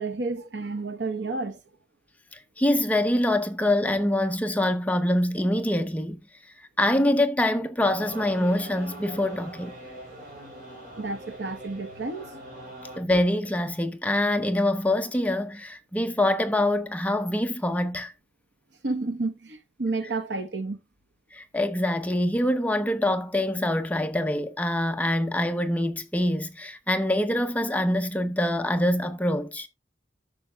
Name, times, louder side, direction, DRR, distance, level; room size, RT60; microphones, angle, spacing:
voice 1, 0.0-1.6 11.0-12.3 18.8-20.8, right 3 dB, 75° right, 1.1 m, -31 dB
voice 2, 2.3-6.2 6.8-9.7 13.0-18.1 21.3-29.7, left 1 dB, 10° left, 0.6 m, -25 dB
sound 1, 7.8-13.0, equal, 50° right, 4.2 m, -42 dB
11.5 x 6.9 x 2.3 m
head